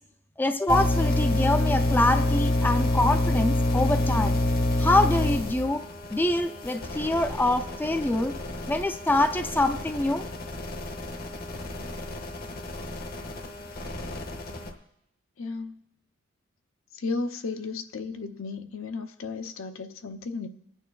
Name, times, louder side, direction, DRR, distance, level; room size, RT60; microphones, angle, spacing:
voice 1, 0.4-4.4 4.8-5.8 6.1-8.3 8.7-10.2, left 2 dB, 10° left, 7 dB, 0.4 m, -25 dB
sound 1, 0.7-14.7, left 1 dB, 50° left, 0.9 m, -28 dB
voice 2, 15.4-15.8 16.9-20.5, left 4 dB, 80° left, 7 dB, 0.6 m, -34 dB
24.5 x 8.9 x 2.3 m, 0.79 s
head